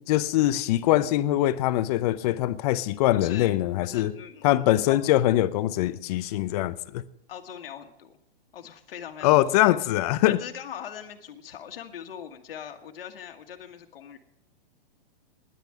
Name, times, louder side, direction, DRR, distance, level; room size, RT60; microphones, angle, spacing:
voice 1, 0.1-4.1 4.4-7.0 9.2-10.4, left 14 dB, 40° left, 0.7 m, -23 dB
voice 2, 3.1-3.5 3.8-5.0 7.3-8.2 8.5-9.8 10.2-14.2, left 9 dB, 75° left, 1.6 m, -41 dB
10.5 x 10.5 x 8.7 m
hypercardioid pair, 135°, 29 cm